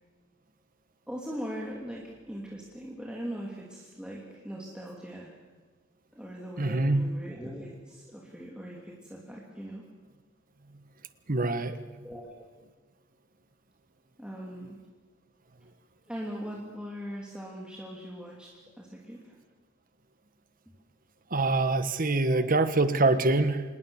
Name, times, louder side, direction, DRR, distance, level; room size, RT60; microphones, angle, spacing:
voice 1, 1.1-5.4 6.1-9.9 12.0-12.4 14.2-14.8 16.1-19.4 20.7-20.8 22.0-22.5 23.0-23.1, equal, 5° right, -3 dB, 2.9 m, -40 dB
voice 2, 6.6-7.0 11.3-11.8 21.3-23.6, right 2 dB, 45° right, 11 dB, 1.4 m, -24 dB
26.5 x 20.0 x 7.2 m, 1.3 s
head